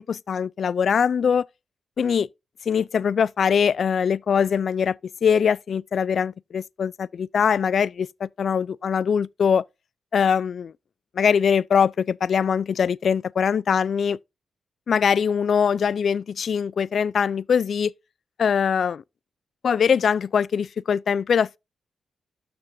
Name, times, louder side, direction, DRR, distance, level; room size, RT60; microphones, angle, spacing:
voice 1, 0.0-1.5 2.0-2.3 2.7-9.6 10.1-10.7 11.1-14.2 14.9-17.9 18.4-19.0 19.6-21.6, left 7 dB, 65° left, 0.4 m, -22 dB
13.0 x 6.0 x 2.6 m
supercardioid pair, 55°, 0 cm